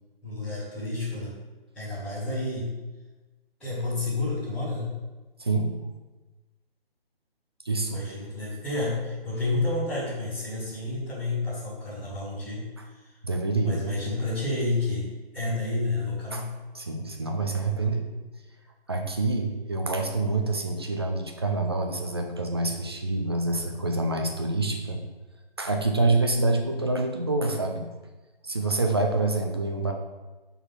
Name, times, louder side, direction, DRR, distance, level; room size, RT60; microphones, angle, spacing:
voice 1, 0.2-1.3 1.7-2.8 3.6-5.0 7.9-13.0 13.6-15.1 15.3-16.5, left 2 dB, 5° left, -14 dB, 2.2 m, -30 dB
voice 2, 5.4-5.7 7.6-8.0 10.5-10.6 13.2-13.8 16.3-16.4 16.7-18.1 18.9-25.0 25.6-27.8 28.4-29.9, right 2 dB, 25° right, 3 dB, 0.5 m, -26 dB
6.3 x 4.1 x 5.7 m, 1.2 s
figure-of-eight pair, 150°, 30 cm